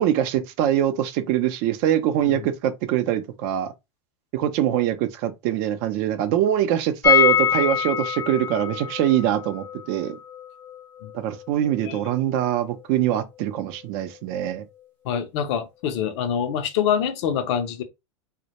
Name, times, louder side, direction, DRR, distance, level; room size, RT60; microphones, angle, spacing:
voice 1, 0.0-3.7 4.3-10.2 11.1-14.6, right 11 dB, 55° right, 0.5 m, -23 dB
sound 1, 7.0-12.8 13.1-13.2 13.4-13.5, left 8 dB, 15° left, 0.5 m, -25 dB
voice 2, 15.0-17.8, left 8 dB, 65° left, 0.5 m, -25 dB
2.1 x 2.1 x 2.8 m
hypercardioid pair, 110°, 16 cm